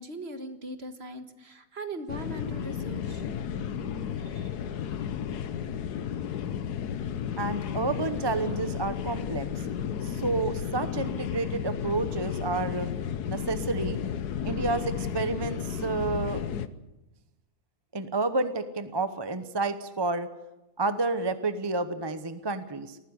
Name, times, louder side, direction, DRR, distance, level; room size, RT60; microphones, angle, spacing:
voice 1, 0.0-3.3, right 2 dB, 45° right, 8 dB, 1.7 m, -39 dB
sound 1, 2.1-16.7, left 8 dB, 85° left, 1.5 m, -33 dB
voice 2, 7.4-9.5 10.0-12.9 13.2-14.0 14.4-16.4 17.9-20.3 20.8-23.0, right 3 dB, 20° right, 11 dB, 0.7 m, -30 dB
19.5 x 14.5 x 9.8 m, 0.99 s
omnidirectional pair, 1.6 m